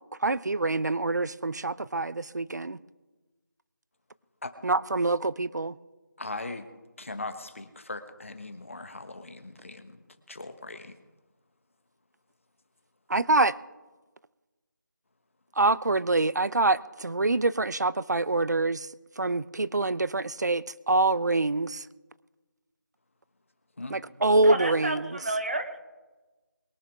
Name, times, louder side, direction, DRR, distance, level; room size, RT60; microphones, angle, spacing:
voice 1, 0.2-2.8 4.6-5.8 13.1-13.5 15.6-18.9 19.2-21.9 23.9-25.2, right 2 dB, 60° right, 19 dB, 0.5 m, -25 dB
voice 2, 6.2-6.7 7.0-10.0 10.3-11.0 23.8-24.0, left 2 dB, 40° left, 9 dB, 1.2 m, -39 dB
voice 3, 24.4-25.8, right 2 dB, 35° right, 8 dB, 1.0 m, -30 dB
22.5 x 11.0 x 3.6 m, 1.2 s
figure-of-eight pair, 175°, 11 cm